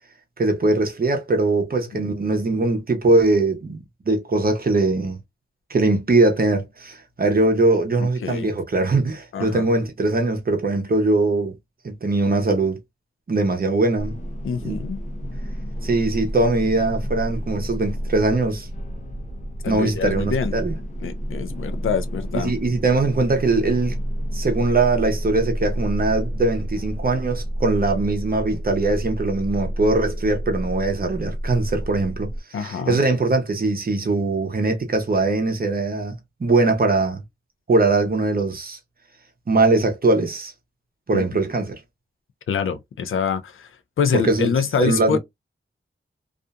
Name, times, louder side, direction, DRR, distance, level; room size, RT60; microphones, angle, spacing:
voice 1, 0.4-5.2 5.7-11.6 11.8-12.8 13.3-14.2 14.6-14.8 15.8-18.7 19.7-20.7 22.3-24.0 24.3-32.3 32.6-37.2 37.7-38.8 39.5-40.5 41.1-41.8 44.1-44.5 44.8-45.2, right 2 dB, 45° right, 0.8 m, -21 dB
voice 2, 9.3-9.7 14.4-15.0 19.6-20.5 21.0-22.5 32.5-33.0 41.1-41.2 42.5-43.7 44.0-45.2, left 6 dB, 90° left, 0.4 m, -25 dB
sound 1, 14.0-32.4, equal, 40° left, 0.7 m, -30 dB
2.6 x 2.5 x 2.2 m
wide cardioid pair, 80°, 20 cm